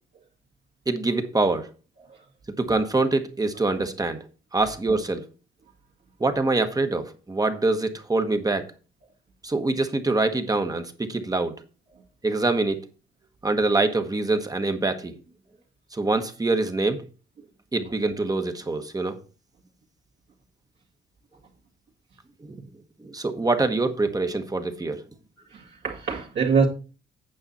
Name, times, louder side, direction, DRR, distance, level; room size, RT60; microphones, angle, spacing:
voice 1, 0.9-1.7 2.6-4.2 4.5-5.3 6.2-8.7 9.4-11.6 12.2-12.8 13.4-15.2 15.9-17.0 17.7-19.2 22.4-22.6 23.0-25.0, right 3 dB, 20° right, 1.2 m, -24 dB
voice 2, 25.5-26.7, right 5 dB, 60° right, 2.2 m, -25 dB
8.9 x 6.7 x 4.2 m
cardioid pair, 90°, 20 cm